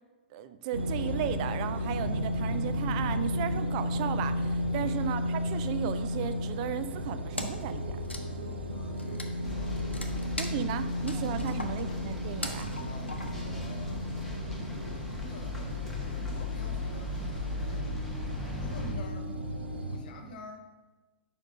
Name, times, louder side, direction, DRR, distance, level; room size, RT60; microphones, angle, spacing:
voice 1, 0.3-8.0 10.4-12.7, right 10 dB, 40° right, 11 dB, 0.4 m, -35 dB
sound 1, 0.7-20.0, left 1 dB, 70° right, 0.9 m, -34 dB
voice 2, 4.6-5.0 8.7-10.2 11.4-11.6 12.8-14.1 14.7-17.9 18.5-19.4 19.8-20.7, left 2 dB, 50° left, 3 dB, 1.1 m, -48 dB
Wood, 7.4-7.7 8.0-13.6, left 2 dB, 90° left, 0.7 m, -41 dB
sound 2, 9.4-18.9, left 2 dB, 5° left, 1.1 m, -38 dB
4.9 x 4.8 x 5.2 m, 1.2 s
figure-of-eight pair, 110°, 6 cm